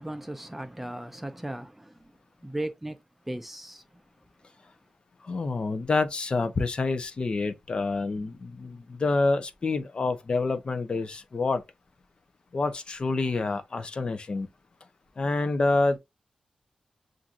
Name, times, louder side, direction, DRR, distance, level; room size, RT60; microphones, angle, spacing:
voice 1, 0.0-1.9 2.4-3.0 3.3-3.8, right 1 dB, 10° right, 0.5 m, -36 dB
voice 2, 5.2-11.6 12.5-14.5 15.2-16.0, left 3 dB, 45° left, 0.6 m, -27 dB
7.1 x 2.6 x 2.4 m
wide cardioid pair, 115°, 2 cm